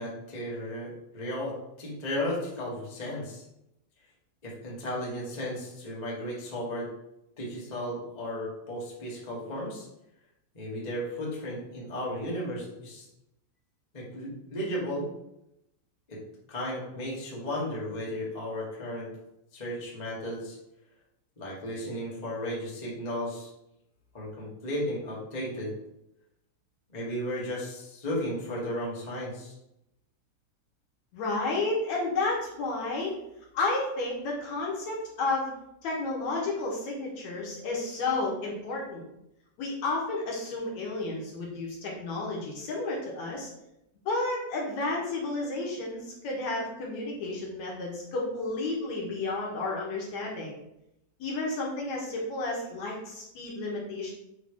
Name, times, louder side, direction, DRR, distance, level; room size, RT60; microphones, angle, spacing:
voice 1, 0.0-3.4 4.4-6.9 7.4-9.9 10.5-13.0 13.9-15.1 16.1-16.2 16.5-19.1 19.5-20.6 21.4-23.5 24.1-25.7 26.9-29.5, equal, 40° left, -5 dB, 0.6 m, -34 dB
voice 2, 31.1-33.1 33.5-35.5 35.8-39.0 39.6-43.5 44.1-50.6 51.2-54.1, left 2 dB, 60° left, -2 dB, 2.2 m, -31 dB
7.8 x 3.2 x 4.9 m, 0.84 s
omnidirectional pair, 4.2 m